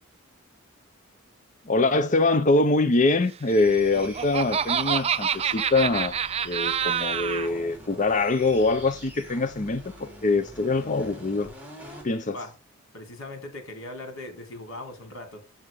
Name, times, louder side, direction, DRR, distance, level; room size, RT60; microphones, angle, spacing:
voice 1, 1.7-6.2 6.4-11.5 12.0-12.4, left 3 dB, 40° left, 0.7 m, -23 dB
sound 1, 3.5-12.1, right 1 dB, 10° right, 3.5 m, -44 dB
Laughter, 3.7-7.5, right 8 dB, 30° right, 0.4 m, -27 dB
voice 2, 12.9-15.4, left 2 dB, 85° left, 3.2 m, -39 dB
7.9 x 7.9 x 3.6 m
head